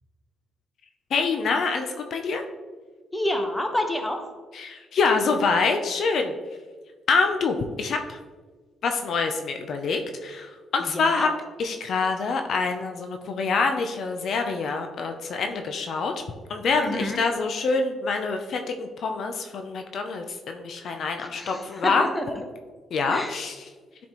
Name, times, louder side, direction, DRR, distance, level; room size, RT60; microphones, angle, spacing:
voice 1, 1.1-2.4 4.5-6.3 7.1-8.2 8.8-11.3 11.6-16.2 16.5-22.1 22.9-23.7, left 4 dB, 65° left, 5 dB, 0.6 m, -26 dB
voice 2, 3.1-4.2 10.9-11.3 16.8-17.2 21.2-22.4 23.1-23.4, left 1 dB, 10° left, 4 dB, 1.0 m, -28 dB
10.5 x 4.2 x 3.0 m, 1.4 s
cardioid pair, 90°, 0 cm